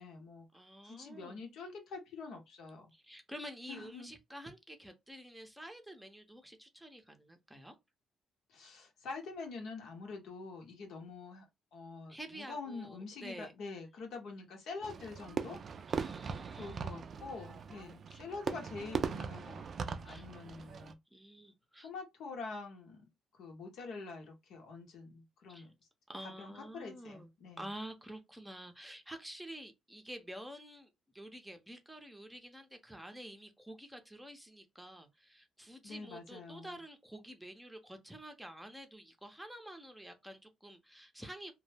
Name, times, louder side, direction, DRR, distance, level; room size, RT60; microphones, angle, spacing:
voice 1, 0.0-0.5 0.8-2.9 3.7-4.1 8.5-11.4 11.7-15.6 16.6-21.0 21.8-23.0 23.4-25.7 26.4-27.6 35.8-36.8, left 4 dB, 75° left, 0.8 m, -46 dB
voice 2, 0.5-1.4 2.9-7.7 12.1-13.5 15.9-16.8 18.1-18.2 20.1-20.2 21.1-21.9 25.5-25.7 26.1-27.3 27.6-41.5, right 1 dB, 5° right, 0.6 m, -49 dB
Fireworks, 14.8-20.9, right 6 dB, 50° right, 0.3 m, -40 dB
2.2 x 2.0 x 3.3 m
cardioid pair, 90°, 0 cm